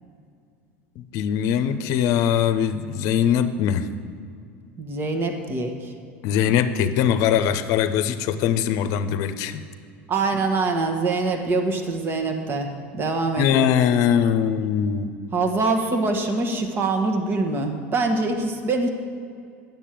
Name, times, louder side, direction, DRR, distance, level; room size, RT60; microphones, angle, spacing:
voice 1, 1.0-3.9 6.2-9.6 13.4-15.1, left 9 dB, 60° left, 11 dB, 0.7 m, -21 dB
voice 2, 4.8-5.9 10.1-13.7 15.3-18.9, right 3 dB, 35° right, 4 dB, 1.4 m, -24 dB
10.0 x 7.3 x 7.6 m, 2.3 s
supercardioid pair, 100°, 6 cm